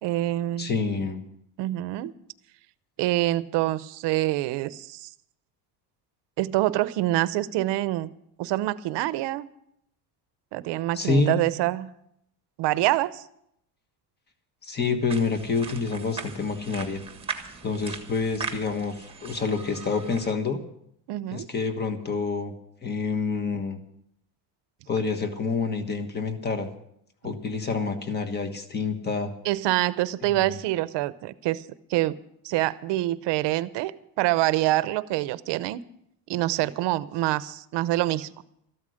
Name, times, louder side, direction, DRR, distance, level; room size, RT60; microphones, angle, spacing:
voice 1, 0.0-0.7 1.6-2.1 3.0-5.1 6.4-8.1 8.4-9.5 10.5-11.9 12.6-13.2 21.1-21.5 29.4-32.1 32.4-35.8 36.3-38.3, right 16 dB, 70° right, 16 dB, 0.8 m, -26 dB
voice 2, 0.6-1.2 10.9-11.5 14.6-17.0 17.6-20.6 21.3-22.5 22.8-23.8 24.9-26.7 27.2-29.3 30.2-30.5, left 4 dB, 20° left, 7 dB, 1.4 m, -27 dB
sound 1, 15.1-20.3, right 5 dB, 15° right, 1.4 m, -39 dB
14.0 x 12.0 x 6.5 m, 0.74 s
cardioid pair, 150°, 44 cm